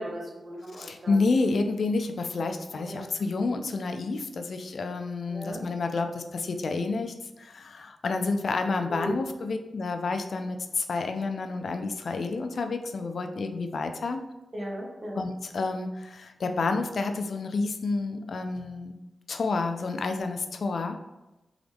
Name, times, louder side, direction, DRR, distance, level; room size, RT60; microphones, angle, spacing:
voice 1, 0.0-1.2 2.8-3.0 5.3-5.6 8.9-9.2 14.5-15.2, equal, 40° right, -1 dB, 1.1 m, -36 dB
voice 2, 0.7-14.2 15.2-19.0 19.3-21.0, left 3 dB, 65° left, 6 dB, 0.4 m, -29 dB
3.9 x 3.6 x 3.4 m, 1.0 s
wide cardioid pair, 90°, 0 cm